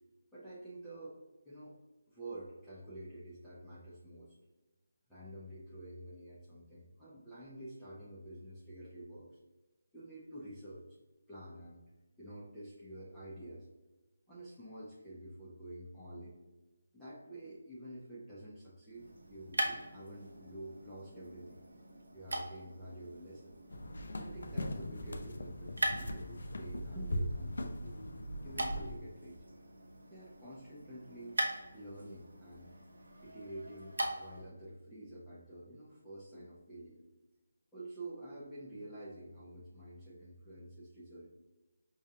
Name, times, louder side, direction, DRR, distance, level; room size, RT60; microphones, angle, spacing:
voice 1, 0.3-1.2 1.4-1.8 2.1-4.4 5.1-9.4 9.9-10.8 11.3-11.8 12.2-13.7 14.3-16.4 16.9-21.6 22.1-23.5 24.1-28.0 28.4-29.4 30.1-31.3 31.7-32.7 33.2-37.0 37.7-41.3, right 1 dB, 5° left, -11 dB, 0.6 m, -49 dB
sound 1, 18.9-34.5, right 1 dB, 90° right, 0.7 m, -42 dB
sound 2, 23.7-29.0, left 1 dB, 70° left, 0.4 m, -39 dB
4.7 x 2.3 x 2.7 m, 1.1 s
figure-of-eight pair, 165°, 0 cm